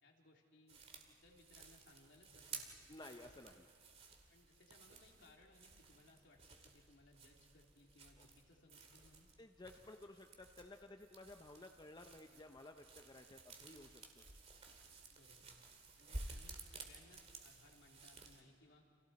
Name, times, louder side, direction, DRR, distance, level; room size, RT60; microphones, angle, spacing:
voice 1, 0.0-2.8 4.3-9.3 15.1-15.6 16.0-18.9, left 2 dB, 70° left, 0 dB, 3.2 m, -66 dB
sound 1, 0.7-18.4, right 3 dB, 35° right, 2.2 m, -55 dB
voice 2, 2.9-3.7 8.2-8.3 9.4-14.2, left 2 dB, 25° left, 5 dB, 0.7 m, -56 dB
30.0 x 27.0 x 4.3 m, 2.3 s
head